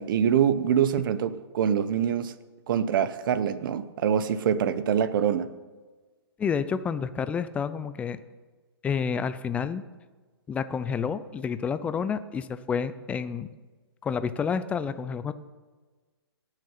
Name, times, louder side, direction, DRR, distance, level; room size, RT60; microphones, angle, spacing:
voice 1, 0.0-2.3 2.7-5.5, right 8 dB, 55° right, 14 dB, 0.9 m, -25 dB
voice 2, 6.4-8.2 8.8-9.8 10.5-13.5 14.0-15.3, left 6 dB, 10° left, 13 dB, 0.4 m, -29 dB
18.0 x 6.6 x 5.7 m, 1.3 s
hypercardioid pair, 140°, 14 cm